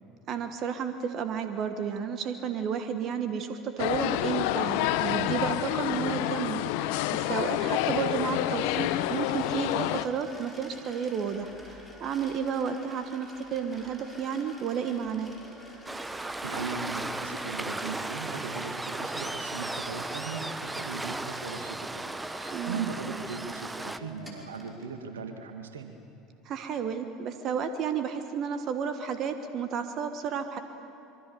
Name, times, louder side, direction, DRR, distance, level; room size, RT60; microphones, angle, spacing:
voice 1, 0.3-15.3 22.5-22.9 26.4-30.6, right 7 dB, 50° right, 8 dB, 1.4 m, -32 dB
sound 1, 3.8-10.1, left 14 dB, 65° left, 0.8 m, -28 dB
sound 2, 5.4-24.9, left 1 dB, 5° left, 5.4 m, -50 dB
Waves surf, 15.9-24.0, right 2 dB, 10° right, 0.9 m, -36 dB
voice 2, 16.2-25.9, right 5 dB, 80° right, 6 dB, 1.8 m, -38 dB
25.0 x 23.5 x 7.0 m, 2.9 s
hypercardioid pair, 70°, 0 cm